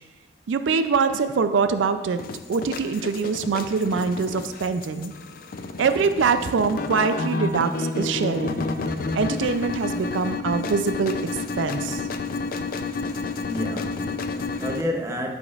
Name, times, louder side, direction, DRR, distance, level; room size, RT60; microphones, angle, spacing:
voice 1, 0.5-2.2 2.5-5.1 5.8-8.6 9.1-11.2 11.6-12.0, right 5 dB, 80° right, 9 dB, 0.4 m, -24 dB
sound 1, 2.2-14.8, left 3 dB, 45° left, 0.4 m, -30 dB
voice 2, 13.4-15.3, equal, 15° right, 1 dB, 0.7 m, -30 dB
12.0 x 5.2 x 2.4 m, 1.1 s
head